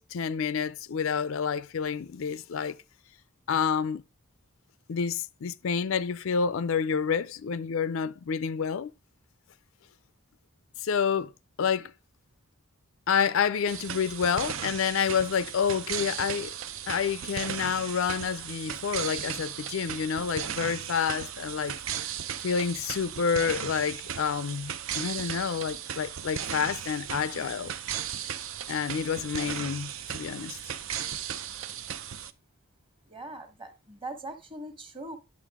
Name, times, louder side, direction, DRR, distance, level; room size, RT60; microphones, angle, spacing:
voice 1, 0.0-2.8 3.5-4.0 4.9-8.9 10.8-11.3 11.6-11.9 13.1-16.6 16.9-21.8 22.4-27.7 28.7-30.6, left 6 dB, 65° left, 0.4 m, -29 dB
sound 1, 13.7-32.3, right 9 dB, 65° right, 0.6 m, -36 dB
voice 2, 33.1-35.2, right 2 dB, 25° right, 1.3 m, -41 dB
10.0 x 6.5 x 3.5 m
head